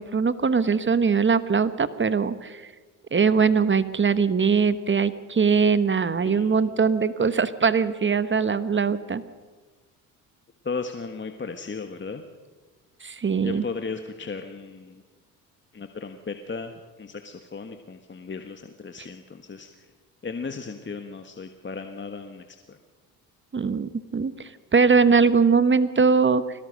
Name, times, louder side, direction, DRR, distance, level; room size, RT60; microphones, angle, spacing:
voice 1, 0.0-2.6 3.1-9.2 13.0-13.6 23.5-26.4, right 5 dB, 25° right, 14 dB, 1.1 m, -21 dB
voice 2, 6.2-6.6 10.6-12.2 13.4-15.0 15.7-19.9 20.2-22.8, left 4 dB, 25° left, 6 dB, 1.5 m, -36 dB
22.0 x 18.5 x 6.5 m, 1.3 s
supercardioid pair, 70°, 43 cm